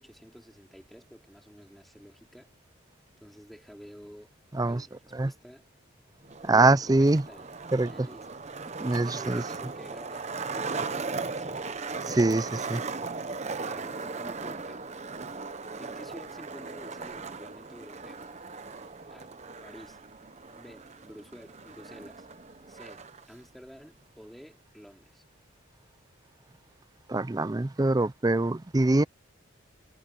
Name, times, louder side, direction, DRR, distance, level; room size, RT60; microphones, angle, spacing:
voice 1, 0.0-2.5 3.2-4.3 4.6-5.7 6.5-7.5 7.8-8.3 9.0-10.3 10.5-12.5 13.6-14.9 15.8-18.3 19.1-19.3 19.6-20.0 20.6-22.3 22.7-23.0 23.3-25.2, equal, ahead, 4.1 m, -49 dB
Skateboard, 6.2-23.2, right 4 dB, 35° right, 0.9 m, -38 dB
voice 2, 6.4-7.2 7.7-7.9 8.8-9.4 12.1-12.8 27.1-29.0, right 2 dB, 20° right, 0.4 m, -24 dB
head